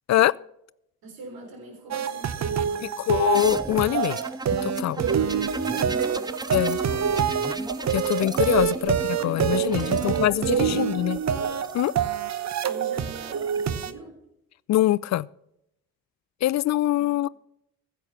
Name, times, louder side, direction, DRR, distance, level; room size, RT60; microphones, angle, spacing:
voice 1, 1.0-3.0 5.0-6.4 8.5-8.8 9.2-10.9 12.7-14.2 17.0-17.2, right 3 dB, 65° right, 3 dB, 4.0 m, -42 dB
sound 1, 1.9-13.9, right 8 dB, 45° right, 1.0 m, -26 dB
voice 2, 2.8-4.2 4.6-5.0 6.5-6.8 7.9-9.0 9.2-11.2 11.7-11.9 14.7-15.3 16.4-17.3, left 14 dB, 45° left, 22 dB, 0.4 m, -23 dB
Distorted Laser, 3.3-11.9 13.0-13.6, right 2 dB, 10° right, 0.6 m, -36 dB
15.0 x 8.1 x 5.8 m, 0.79 s
hypercardioid pair, 40°, 38 cm